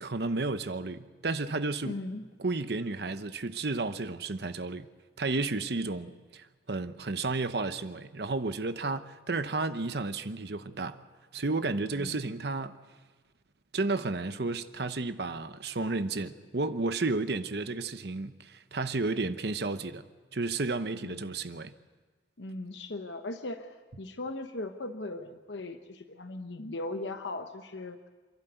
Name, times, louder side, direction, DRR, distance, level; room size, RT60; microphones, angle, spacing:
voice 1, 0.0-2.0 2.4-4.9 5.2-11.0 11.3-12.8 13.7-20.0 20.3-21.7, right 3 dB, 65° right, 0.9 m, -32 dB
voice 2, 1.8-2.3 11.9-12.3 21.0-21.2 22.4-28.1, left 2 dB, 85° left, 1.0 m, -38 dB
28.0 x 11.5 x 8.0 m
head